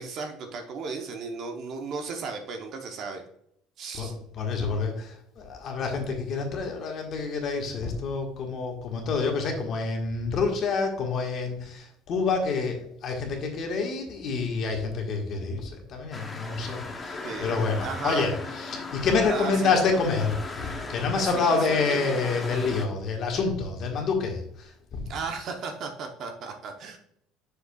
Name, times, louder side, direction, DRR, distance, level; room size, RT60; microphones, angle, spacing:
voice 1, 0.0-3.2 3.8-4.1 17.2-18.3 19.2-19.7 21.1-22.0 25.1-27.0, right 4 dB, 40° right, 4 dB, 0.8 m, -35 dB
voice 2, 3.9-25.1, left 4 dB, 35° left, 2 dB, 1.4 m, -28 dB
sound 1, 16.1-22.9, left 3 dB, 15° left, 0.8 m, -38 dB
7.6 x 6.6 x 2.3 m, 0.72 s
cardioid pair, 175°, 0 cm